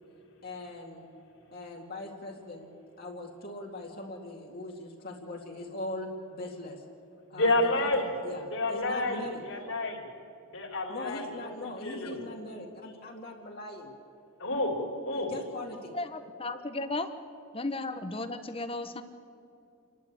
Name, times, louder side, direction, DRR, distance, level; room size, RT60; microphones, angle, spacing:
voice 1, 0.4-1.1 1.5-2.7 3.0-6.8 7.3-9.4 10.9-13.9 15.1-15.9, left 2 dB, 45° left, -1 dB, 2.2 m, -40 dB
voice 2, 7.3-8.0 8.5-10.0 10.5-12.2 14.4-14.8 15.1-15.3, left 2 dB, 60° left, 0 dB, 3.7 m, -30 dB
voice 3, 15.9-17.1 17.5-19.0, left 2 dB, 25° left, 9 dB, 1.0 m, -34 dB
28.5 x 12.0 x 8.6 m, 2.8 s
head